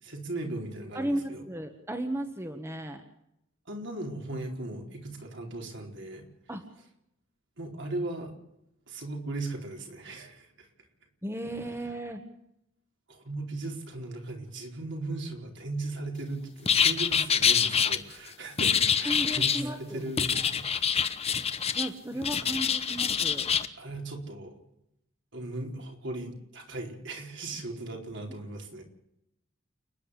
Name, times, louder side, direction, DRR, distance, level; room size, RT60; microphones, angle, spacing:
voice 1, 0.0-1.4 3.7-6.3 7.6-8.3 8.9-10.7 13.1-21.1 21.4-21.5 22.1-22.2 23.8-24.5 25.3-28.8, right 2 dB, 65° right, 2 dB, 4.4 m, -38 dB
voice 2, 0.9-3.0 6.5-6.6 11.2-12.2 19.0-20.5 21.7-23.5, right 1 dB, 15° right, 6 dB, 1.6 m, -35 dB
sound 1, 16.6-18.0 18.6-19.6 20.2-21.9 22.2-23.7, left 7 dB, 30° left, 1.0 m, -25 dB
29.5 x 10.5 x 8.3 m, 0.80 s
head